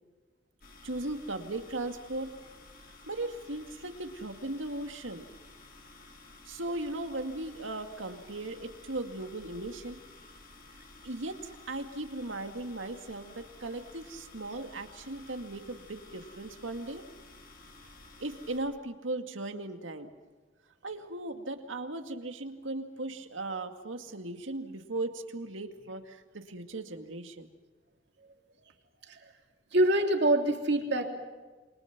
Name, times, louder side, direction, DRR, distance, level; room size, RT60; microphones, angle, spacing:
sound 1, 0.6-18.6, left 2 dB, 50° left, 5.5 m, -53 dB
voice 1, 0.8-2.3 2.8-5.3 6.5-10.0 11.0-17.1 18.2-20.1 20.8-27.5, right 2 dB, 90° right, 6 dB, 2.2 m, -37 dB
voice 2, 29.7-31.1, right 1 dB, 60° right, 3 dB, 3.1 m, -25 dB
28.0 x 25.0 x 6.0 m, 1.3 s
head